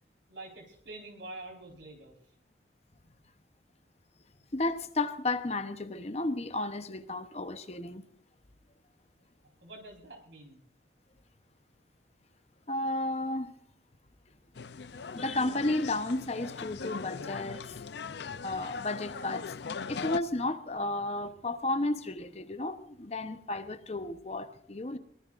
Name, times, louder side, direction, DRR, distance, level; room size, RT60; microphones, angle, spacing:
voice 1, 0.3-2.1 9.4-10.6, right 2 dB, 75° right, 4.7 m, -46 dB
voice 2, 4.5-8.0 12.7-13.5 15.1-17.8 18.4-19.5 19.9-25.0, left 2 dB, 35° left, 0.9 m, -33 dB
sound 1, 14.6-20.2, left 5 dB, 65° left, 0.5 m, -40 dB
23.0 x 20.0 x 2.6 m
head